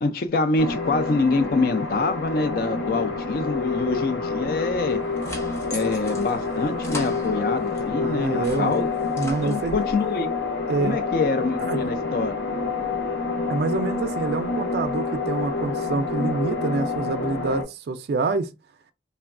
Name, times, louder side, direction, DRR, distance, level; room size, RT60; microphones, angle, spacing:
voice 1, 0.0-5.0 5.7-8.9 9.4-10.3 10.8-12.3, left 3 dB, 55° left, 0.4 m, -25 dB
sound 1, 0.6-17.6, left 3 dB, 75° left, 0.7 m, -28 dB
sound 2, 4.8-7.9 8.2-10.0, left 1 dB, 15° left, 0.7 m, -39 dB
voice 2, 8.0-8.7 9.2-9.8 10.7-11.0 11.6-11.9 13.5-18.5, right 3 dB, 65° right, 0.3 m, -26 dB
3.2 x 2.2 x 2.4 m
head